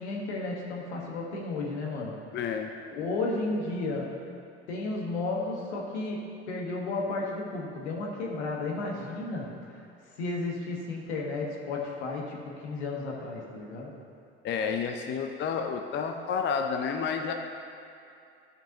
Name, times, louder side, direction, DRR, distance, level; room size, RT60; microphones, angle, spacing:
voice 1, 0.0-2.2 2.9-4.1 4.7-13.9, left 3 dB, 75° left, -1 dB, 1.4 m, -33 dB
voice 2, 2.3-2.7 14.4-17.3, left 6 dB, 35° left, 4 dB, 0.6 m, -30 dB
12.5 x 5.3 x 2.9 m, 2.6 s
hypercardioid pair, 65°, 34 cm